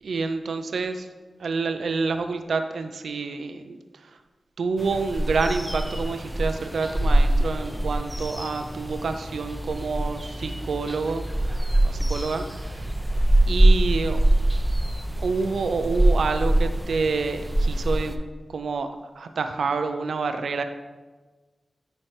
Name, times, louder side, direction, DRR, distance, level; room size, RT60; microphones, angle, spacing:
voice 1, 0.0-1.1 1.4-4.2 4.6-12.9 13.5-14.2 15.2-18.2 18.5-18.9 19.2-20.6, right 4 dB, 80° right, 8 dB, 0.4 m, -28 dB
sound 1, 4.8-18.2, right 1 dB, ahead, 0.7 m, -24 dB
10.5 x 4.4 x 3.2 m, 1.3 s
cardioid pair, 50°, 0 cm